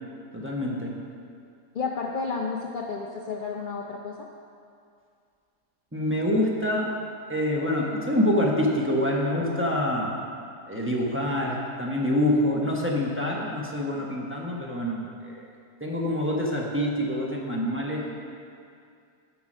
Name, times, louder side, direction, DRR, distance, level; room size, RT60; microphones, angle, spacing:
voice 1, 0.3-0.9 5.9-6.9 7.3-10.1 10.7-15.4 15.8-18.3, left 1 dB, 10° right, -3 dB, 0.8 m, -26 dB
voice 2, 1.7-4.3, left 4 dB, 80° left, 0 dB, 0.4 m, -31 dB
8.2 x 6.0 x 6.2 m, 2.3 s
omnidirectional pair, 1.6 m